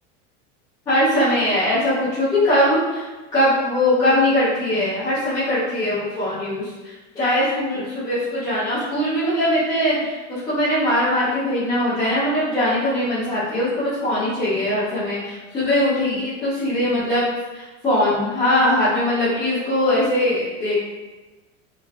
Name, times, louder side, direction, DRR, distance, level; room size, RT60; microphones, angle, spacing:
voice 1, 0.9-17.2 17.5-20.8, left 1 dB, 10° left, -13 dB, 0.4 m, -21 dB
3.3 x 3.3 x 2.3 m, 1.2 s
supercardioid pair, 180°, 35 cm